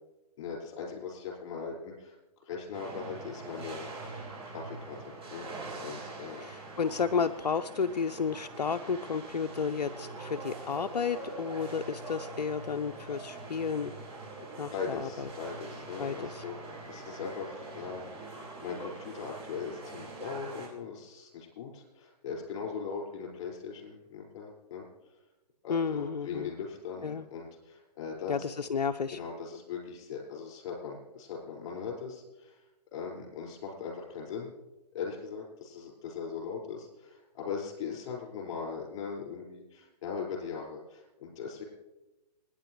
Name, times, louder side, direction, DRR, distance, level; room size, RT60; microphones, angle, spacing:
voice 1, 0.4-2.2 2.4-4.1 4.4-5.5 5.8-6.5 14.6-18.1 18.6-24.9 25.6-28.3 29.1-32.6 32.9-34.5 34.9-41.6, left 6 dB, 45° left, 0 dB, 5.1 m, -40 dB
sound 1, 2.7-20.7, right 3 dB, 25° right, 6.1 m, -44 dB
voice 2, 6.4-13.9 14.6-15.3 16.0-16.4 25.7-26.5 27.0-27.2 28.3-29.2, left 6 dB, 85° left, 8 dB, 0.6 m, -32 dB
28.0 x 9.9 x 3.1 m, 1.0 s
hypercardioid pair, 130°, 21 cm